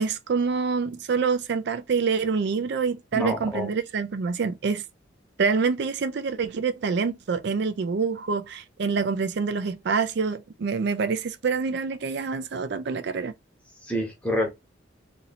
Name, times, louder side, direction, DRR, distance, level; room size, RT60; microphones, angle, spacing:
voice 1, 0.0-4.8 5.4-13.3, right 5 dB, 55° right, 0.4 m, -26 dB
voice 2, 3.1-3.7 13.8-14.5, equal, 5° left, 0.8 m, -27 dB
2.8 x 2.7 x 4.0 m
head